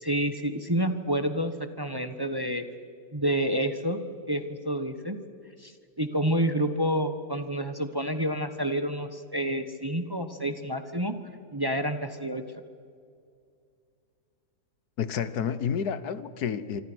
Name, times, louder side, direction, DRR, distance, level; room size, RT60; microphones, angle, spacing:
voice 1, 0.0-1.5 1.8-2.6 3.1-5.2 5.6-5.7 6.0-11.1 11.5-12.4, right 1 dB, 15° right, 9 dB, 1.0 m, -28 dB
voice 2, 15.0-16.8, left 7 dB, 80° left, 14 dB, 1.6 m, -30 dB
26.0 x 25.0 x 6.3 m, 2.3 s
omnidirectional pair, 1.6 m